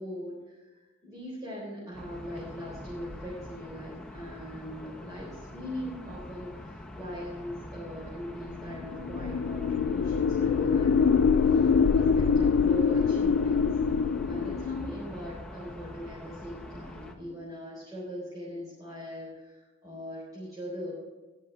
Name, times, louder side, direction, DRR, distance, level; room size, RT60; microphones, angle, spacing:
voice 1, 0.0-13.7 14.0-20.9, equal, 20° right, -7 dB, 3.9 m, -41 dB
sound 1, 1.9-17.2, left 1 dB, 5° left, 1.1 m, -44 dB
sound 2, 8.8-14.9, left 6 dB, 75° left, 0.3 m, -24 dB
18.5 x 6.5 x 5.6 m, 1.2 s
head